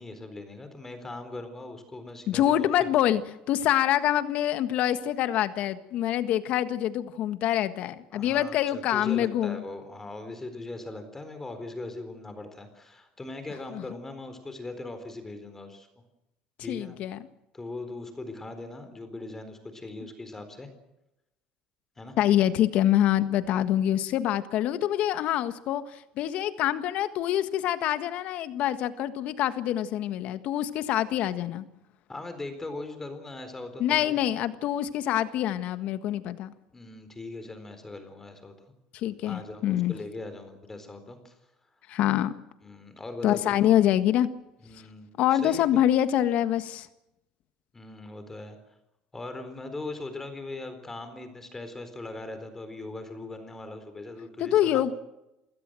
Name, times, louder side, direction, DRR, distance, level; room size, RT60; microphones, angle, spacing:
voice 1, 0.0-2.7 8.1-15.9 16.6-17.0 17.5-20.7 22.0-22.2 32.1-34.2 36.7-38.6 39.3-41.3 42.6-43.5 44.6-45.6 47.7-48.6 49.1-54.9, left 2 dB, 15° left, 9 dB, 4.1 m, -40 dB
voice 2, 2.3-3.2 3.5-9.6 13.7-13.8 16.7-17.2 22.2-31.6 33.8-36.5 38.9-39.9 41.9-42.3 43.2-44.3 45.2-46.9 54.4-54.9, left 12 dB, 60° left, 11 dB, 1.6 m, -25 dB
28.5 x 16.5 x 7.7 m, 0.93 s
supercardioid pair, 110°, 3 cm